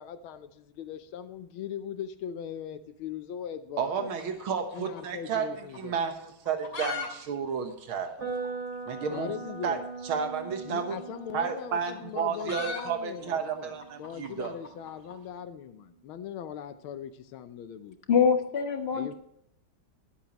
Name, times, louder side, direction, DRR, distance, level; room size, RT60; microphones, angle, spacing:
voice 1, 0.0-4.1 4.7-6.0 9.1-9.8 10.6-13.7 14.0-18.0 18.9-19.2, left 9 dB, 90° left, 9 dB, 1.6 m, -40 dB
voice 2, 3.8-5.5 5.8-8.1 8.9-9.3 9.6-9.8 10.0-11.0 11.3-14.5, right 6 dB, 85° right, 6 dB, 2.1 m, -31 dB
sound 1, 4.1-5.5 5.7-5.8 6.4-7.1 7.3-7.4 7.7-7.8 8.4-8.5 9.7-9.8 11.0-15.2, left 4 dB, 50° left, 3.1 m, -39 dB
sound 2, 8.2-16.1, right 4 dB, 70° right, 3.5 m, -42 dB
voice 3, 18.1-19.2, left 6 dB, 35° left, 6 dB, 1.3 m, -24 dB
21.0 x 8.6 x 3.0 m, 0.76 s
omnidirectional pair, 2.2 m